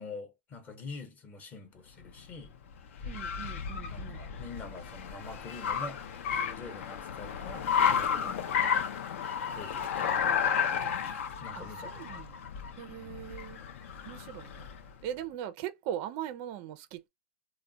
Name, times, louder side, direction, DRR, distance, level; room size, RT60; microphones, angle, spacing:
voice 1, 0.0-2.6 3.9-8.7 9.5-10.4 11.4-12.3 13.0-13.3, left 3 dB, 20° left, 0.8 m, -46 dB
Car, 2.0-14.9, left 7 dB, 70° left, 0.6 m, -32 dB
voice 2, 3.0-4.3 8.2-8.4 10.2-11.2 11.5-12.5 12.8-13.6 14.1-14.7 15.0-17.1, right 11 dB, 35° right, 0.4 m, -41 dB
2.2 x 2.0 x 3.7 m
supercardioid pair, 155°, 7 cm